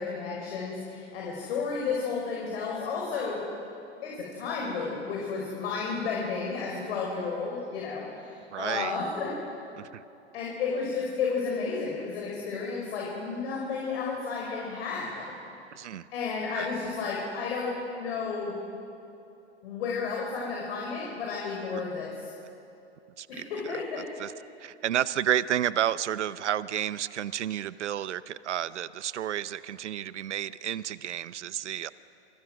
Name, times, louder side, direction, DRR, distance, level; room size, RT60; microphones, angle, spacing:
voice 1, 0.0-3.4 4.0-9.3 10.3-15.3 16.1-18.5 19.6-22.3 23.3-24.0, left 5 dB, 60° left, -2 dB, 5.4 m, -32 dB
voice 2, 8.5-9.0 9.8-10.0 15.7-16.0 16.6-16.7 21.7-21.8 23.2-23.8 24.2-24.3 24.6-31.9, right 11 dB, 80° right, 16 dB, 0.7 m, -31 dB
28.0 x 24.5 x 6.3 m, 2.7 s
hypercardioid pair, 110°, 35 cm